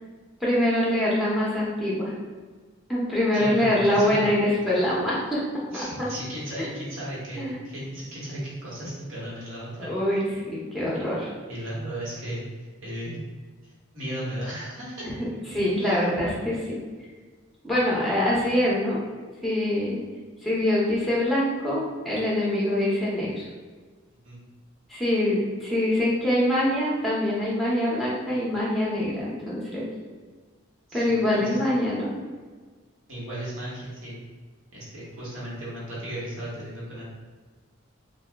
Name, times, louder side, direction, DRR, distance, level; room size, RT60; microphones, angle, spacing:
voice 1, 0.4-2.1 2.9-5.4 5.7-5.8 6.6-6.7 7.3-7.6 9.8-11.3 15.0-15.1 15.5-16.8 17.6-19.0 19.4-20.0 20.4-23.4 24.9-29.8 30.9-32.1, left 1 dB, ahead, -7 dB, 0.7 m, -24 dB
voice 2, 3.3-4.3 5.7-9.9 10.9-11.0 11.5-12.4 12.8-13.2 13.6-15.0 15.8-16.1 24.2-24.4 30.9-31.6 33.1-34.2 34.7-37.0, right 1 dB, 70° right, -7 dB, 1.2 m, -35 dB
2.7 x 2.3 x 3.3 m, 1.4 s
head